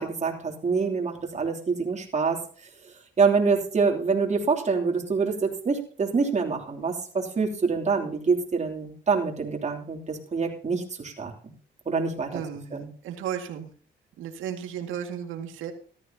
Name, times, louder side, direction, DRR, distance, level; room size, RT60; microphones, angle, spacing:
voice 1, 0.0-2.4 3.2-11.3 11.9-12.4 12.7-12.9, right 4 dB, 35° right, 1 dB, 3.0 m, -26 dB
voice 2, 12.3-12.8 13.0-13.7 14.2-15.7, right 9 dB, 85° right, 5 dB, 2.0 m, -34 dB
14.5 x 13.0 x 2.8 m, 0.43 s
cardioid pair, 90°, 20 cm